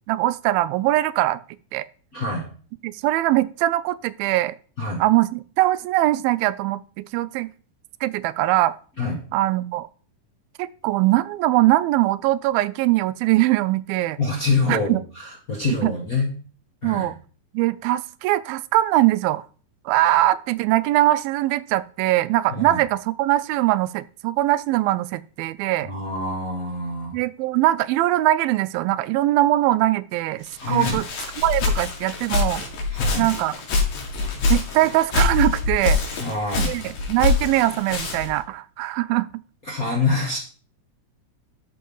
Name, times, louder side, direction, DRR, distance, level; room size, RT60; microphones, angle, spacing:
voice 1, 0.1-1.4 1.7-1.9 2.8-4.6 5.0-7.5 8.0-8.8 9.3-9.9 10.6-14.2 14.7-15.0 15.8-15.9 16.8-17.2 17.5-19.4 19.9-25.9 27.1-31.1 31.4-32.6 33.2-33.5 34.5-36.0 36.6-39.3, right 16 dB, 90° right, 16 dB, 2.4 m, -21 dB
voice 2, 2.1-2.5 4.8-5.0 9.0-9.2 14.2-16.3 16.8-17.1 22.5-22.8 25.8-27.2 30.6-31.0 32.9-33.3 36.2-36.7 39.7-40.4, left 3 dB, 40° left, -1 dB, 1.4 m, -25 dB
Walk footsteps, 30.5-38.4, left 4 dB, 70° left, 3.9 m, -25 dB
12.5 x 5.4 x 5.5 m, 0.41 s
omnidirectional pair, 4.1 m